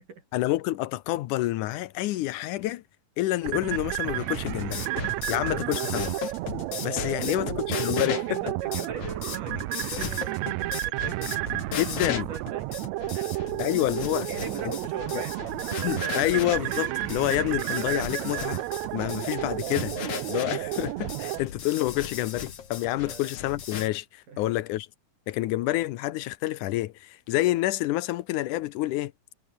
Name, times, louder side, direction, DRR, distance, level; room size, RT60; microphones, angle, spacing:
voice 1, 0.3-2.8 3.2-4.9 5.3-6.1 6.8-7.5 7.8-8.2 11.8-12.3 13.6-14.3 15.1-15.2 15.8-18.6 18.9-24.9 25.3-29.1, left 16 dB, 75° left, 2.1 m, -28 dB
sound 1, 3.4-21.4, right 18 dB, 85° right, 1.6 m, -31 dB
sound 2, 4.2-23.9, left 8 dB, 50° left, 2.8 m, -37 dB
voice 2, 7.1-7.5 8.1-12.9 13.1-13.5 14.3-15.5 23.0-23.3 24.3-24.4, right 5 dB, 70° right, 5.6 m, -41 dB
omnidirectional pair, 3.8 m